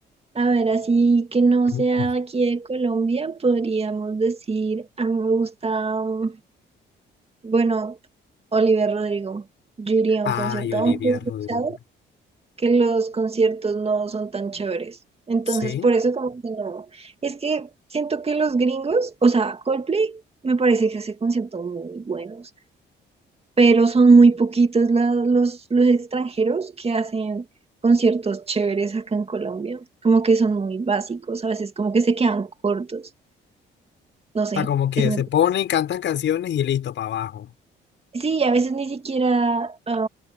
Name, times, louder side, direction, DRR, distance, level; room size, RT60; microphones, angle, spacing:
voice 1, 0.4-6.3 7.4-8.0 8.5-9.4 9.8-11.8 12.6-15.0 15.3-22.5 23.6-27.4 27.8-33.1 34.3-34.7 35.0-35.2 38.1-40.1, right 4 dB, 30° right, 2.3 m, -21 dB
voice 2, 1.7-2.1 10.2-11.8 15.5-15.9 34.5-37.5, left 10 dB, 70° left, 6.7 m, -25 dB
cardioid pair, 90°, 20 cm